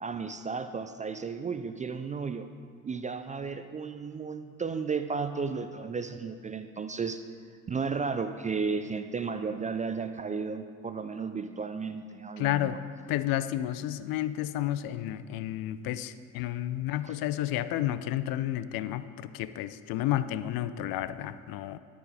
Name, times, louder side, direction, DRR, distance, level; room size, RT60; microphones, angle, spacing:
voice 1, 0.0-2.5 2.8-7.2 7.7-12.8 17.1-17.2, right 5 dB, 20° right, 9 dB, 0.3 m, -34 dB
voice 2, 12.4-12.8 13.1-21.8, left 13 dB, 60° left, 14 dB, 0.5 m, -31 dB
13.0 x 5.0 x 4.9 m, 2.1 s
hypercardioid pair, 60°, 41 cm